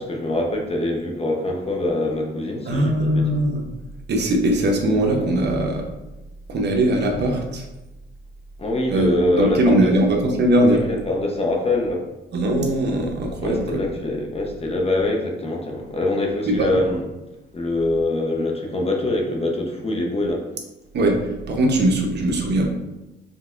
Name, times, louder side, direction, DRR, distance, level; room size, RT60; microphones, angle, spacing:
voice 1, 0.0-3.4 8.6-9.9 10.6-12.0 13.4-17.0 17.5-20.4, left 2 dB, 30° left, 1 dB, 0.9 m, -24 dB
voice 2, 2.7-3.6 4.1-5.9 6.5-7.7 8.9-10.8 12.3-13.9 16.5-16.7 20.9-22.7, right 1 dB, 60° right, 2 dB, 0.9 m, -20 dB
5.4 x 3.3 x 2.5 m, 1.0 s
cardioid pair, 90°, 20 cm